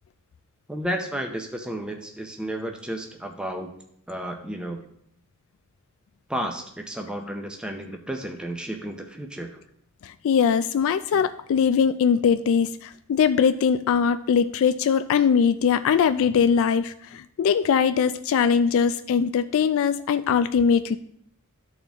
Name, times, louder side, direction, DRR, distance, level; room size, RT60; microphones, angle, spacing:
voice 1, 0.7-3.7 4.1-4.8 6.3-9.5, right 1 dB, 5° right, 3 dB, 0.6 m, -32 dB
voice 2, 10.0-21.0, left 7 dB, 65° left, 11 dB, 0.3 m, -21 dB
12.5 x 4.2 x 3.5 m, 0.70 s
head